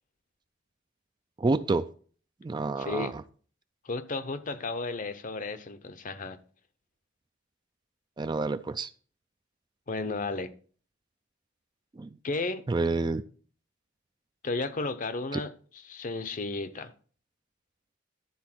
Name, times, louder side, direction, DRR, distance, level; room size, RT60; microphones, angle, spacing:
voice 1, 1.4-1.9 2.4-3.2 8.2-8.9 12.0-12.1 12.7-13.2 15.3-15.4, right 3 dB, 25° right, 0.4 m, -28 dB
voice 2, 2.8-3.1 3.8-6.4 9.9-10.5 12.2-12.6 14.4-16.9, left 3 dB, 40° left, 0.7 m, -33 dB
12.0 x 4.0 x 6.0 m
head